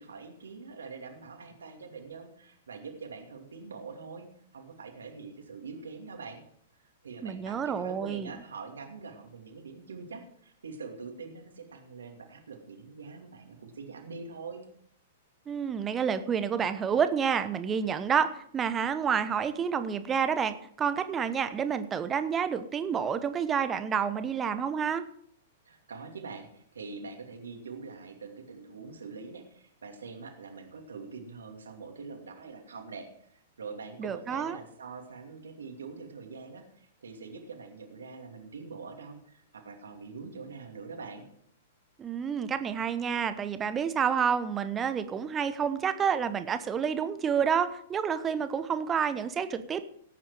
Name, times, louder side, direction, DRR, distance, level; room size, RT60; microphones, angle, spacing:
voice 1, 0.0-4.3 4.5-6.4 7.0-14.6 25.6-41.3, right 4 dB, 70° right, 4 dB, 2.5 m, -44 dB
voice 2, 7.2-8.3 15.5-25.0 34.0-34.6 42.0-49.8, right 7 dB, 20° right, 12 dB, 1.0 m, -29 dB
17.0 x 8.9 x 4.9 m, 0.69 s
figure-of-eight pair, 105°, 0 cm